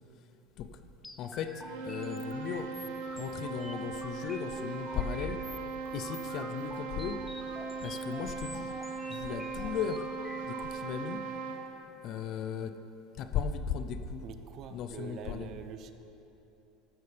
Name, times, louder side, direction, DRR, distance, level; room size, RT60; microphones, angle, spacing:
sound 1, 1.0-10.7, left 2 dB, 10° left, 0.7 m, -48 dB
voice 1, 1.2-2.7 3.2-5.4 5.9-7.2 7.8-8.7 9.1-10.0 10.5-11.2 12.0-12.8 13.2-14.2 14.7-15.5, left 8 dB, 50° left, 10 dB, 0.7 m, -36 dB
sound 2, 1.5-11.8, right 4 dB, 90° right, 1.4 m, -39 dB
voice 2, 14.2-15.9, right 7 dB, 50° right, 9 dB, 0.8 m, -44 dB
14.5 x 12.5 x 3.4 m, 2.9 s
supercardioid pair, 120°, 0 cm